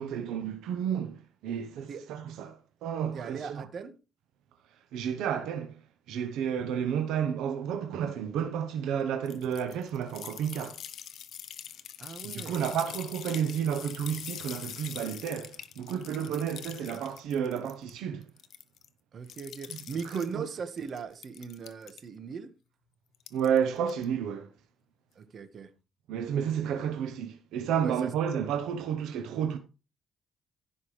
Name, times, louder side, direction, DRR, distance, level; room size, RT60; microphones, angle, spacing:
voice 1, 0.0-3.7 4.9-5.7 6.1-10.8 12.2-18.2 20.3-20.4 23.3-24.5 26.1-29.6, right 8 dB, 90° right, 1.0 m, -31 dB
voice 2, 3.1-4.0 12.0-12.6 16.2-16.6 19.1-22.5 25.1-25.7 27.8-28.1, right 6 dB, 55° right, 1.6 m, -39 dB
sound 1, 9.3-17.9 18.2-18.9 19.3-20.3 20.8-22.0 23.1-23.6 23.9-24.0, left 9 dB, 70° left, 0.9 m, -44 dB
16.0 x 5.5 x 3.3 m
cardioid pair, 90°, 0 cm